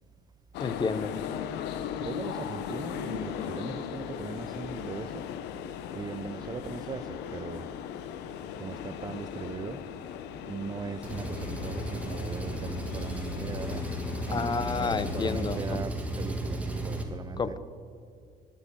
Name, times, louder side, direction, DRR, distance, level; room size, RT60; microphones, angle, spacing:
sound 1, 0.5-15.8, left 9 dB, 90° left, 0.7 m, -38 dB
voice 1, 0.6-1.1 14.3-15.8 17.4-17.6, left 5 dB, 25° left, 0.6 m, -30 dB
voice 2, 2.0-5.3 5.9-7.7 8.4-9.9 10.4-14.0 14.3-17.6, right 5 dB, 25° right, 0.5 m, -39 dB
Engine, 11.0-17.0, equal, 10° right, 1.6 m, -34 dB
11.0 x 10.0 x 7.0 m
cardioid pair, 110°, 17 cm